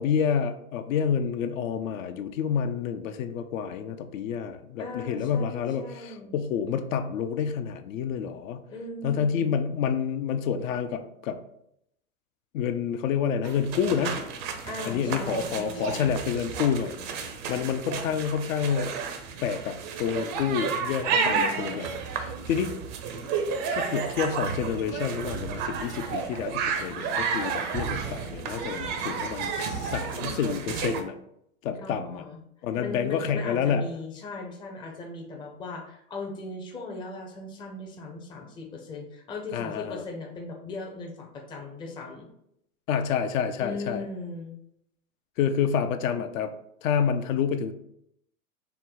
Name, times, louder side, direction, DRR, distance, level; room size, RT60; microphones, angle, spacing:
voice 1, 0.0-8.6 9.0-11.4 12.5-14.2 14.8-18.9 19.4-22.7 23.7-31.1 31.6-32.2 32.6-33.9 39.5-40.0 42.9-44.0 45.4-46.5 46.8-47.7, left 7 dB, 65° left, 8 dB, 0.5 m, -28 dB
voice 2, 4.8-6.4 8.7-9.5 14.6-16.2 21.1-22.0 31.8-32.4 32.8-42.3 43.6-44.5, left 2 dB, 10° left, 1 dB, 0.5 m, -38 dB
sound 1, 13.4-31.0, right 5 dB, 35° right, 0.5 m, -31 dB
4.4 x 2.1 x 3.8 m, 0.75 s
hypercardioid pair, 110°, 43 cm